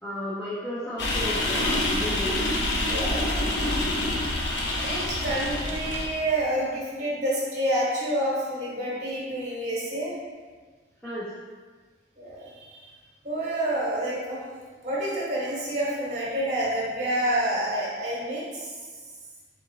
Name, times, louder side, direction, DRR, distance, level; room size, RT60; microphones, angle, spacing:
voice 1, 0.0-2.3 11.0-11.4, left 1 dB, 10° left, -10 dB, 0.6 m, -33 dB
sound 1, 1.0-6.1, left 1 dB, 90° left, 0.6 m, -26 dB
voice 2, 2.9-3.3 4.8-10.1 12.2-12.9 13.2-14.4 14.8-18.7, right 1 dB, 40° right, -6 dB, 1.3 m, -28 dB
4.3 x 3.8 x 2.7 m, 1.4 s
head